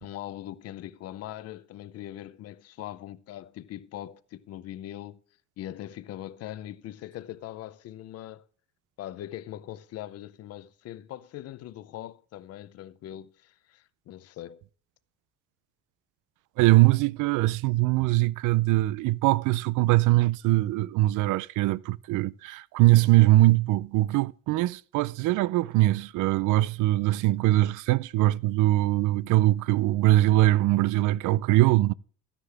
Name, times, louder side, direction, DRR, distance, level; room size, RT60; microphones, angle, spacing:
voice 1, 0.0-5.2 5.6-8.4 9.0-14.6, left 13 dB, 50° left, 0.6 m, -41 dB
voice 2, 16.6-31.9, right 17 dB, 75° right, 0.5 m, -22 dB
13.0 x 9.9 x 3.3 m
cardioid pair, 175°, 31 cm